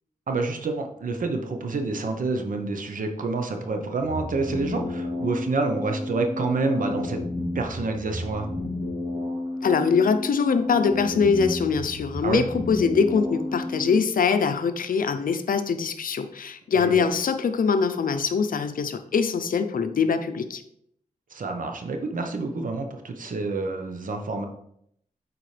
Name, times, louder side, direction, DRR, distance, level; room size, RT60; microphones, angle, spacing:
voice 1, 0.3-7.2 7.5-8.5 12.2-12.4 16.7-17.0 21.3-24.4, right 3 dB, 70° right, 4 dB, 0.9 m, -28 dB
sound 1, 4.0-14.0, left 1 dB, 25° right, 2.9 m, -31 dB
voice 2, 9.6-20.6, left 5 dB, 75° left, 9 dB, 0.6 m, -23 dB
8.6 x 4.3 x 3.3 m, 0.72 s
wide cardioid pair, 90°, 15 cm